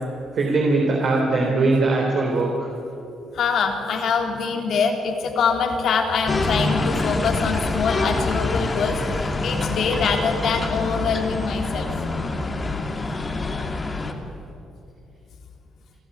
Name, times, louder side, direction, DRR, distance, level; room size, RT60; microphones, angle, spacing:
voice 1, 0.3-2.7, right 3 dB, 60° right, -1 dB, 4.0 m, -20 dB
voice 2, 3.3-11.9, left 5 dB, 65° left, 3 dB, 3.2 m, -24 dB
sound 1, 6.3-14.1, left 2 dB, 25° left, 2.5 m, -26 dB
29.0 x 12.5 x 9.8 m, 2.7 s
cardioid pair, 90°, 0 cm